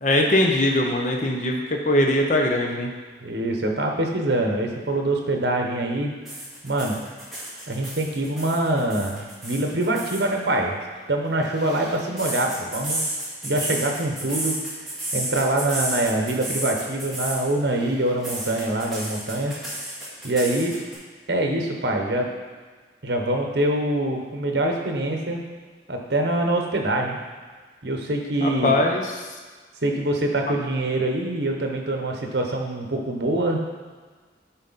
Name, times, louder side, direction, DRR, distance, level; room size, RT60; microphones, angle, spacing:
voice 1, 0.0-2.9 28.4-29.1 30.5-30.6, left 1 dB, 40° left, 1 dB, 0.7 m, -21 dB
voice 2, 3.2-6.1 6.6-7.0 7.7-10.8 11.1-13.0 13.4-14.6 15.1-19.5 20.2-20.8 21.3-22.3 23.0-25.4 25.9-27.2 27.8-28.7 29.8-33.6, right 1 dB, 65° right, 2 dB, 1.0 m, -24 dB
sound 1, 6.2-10.2 11.2-17.4 17.7-20.9, right 1 dB, ahead, 2.1 m, -32 dB
10.0 x 4.1 x 4.1 m, 1.4 s
head